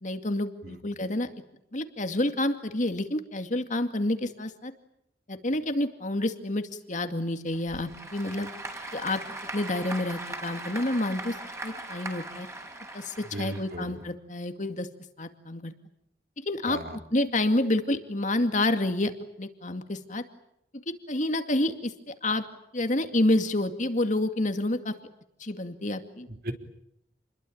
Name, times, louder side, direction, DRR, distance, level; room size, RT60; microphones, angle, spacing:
voice 1, 0.0-1.3 1.7-4.7 5.3-8.5 8.9-9.2 9.5-11.4 11.6-12.5 12.9-14.9 15.2-15.7 16.4-16.8 17.1-19.1 19.4-20.2 21.1-22.4 22.7-24.9 25.4-26.3, left 1 dB, 45° left, 7 dB, 2.3 m, -28 dB
Applause / Crowd, 7.5-14.1, right 2 dB, 15° right, 5.4 m, -40 dB
voice 2, 13.3-14.0 16.7-17.0 26.3-26.5, right 1 dB, 55° right, 5 dB, 3.7 m, -37 dB
29.5 x 22.0 x 8.8 m, 0.79 s
head